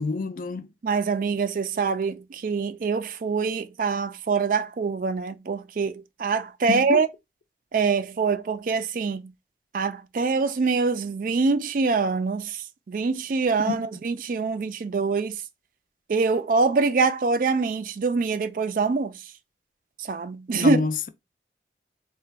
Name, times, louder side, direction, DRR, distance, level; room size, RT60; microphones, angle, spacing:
voice 1, 0.0-0.7 6.7-7.0 13.7-13.8 20.5-21.1, left 4 dB, 50° left, 0.4 m, -27 dB
voice 2, 0.8-7.1 7.7-9.3 9.7-15.4 16.1-19.1 20.0-20.9, right 4 dB, 50° right, 0.3 m, -24 dB
3.8 x 2.1 x 3.3 m
head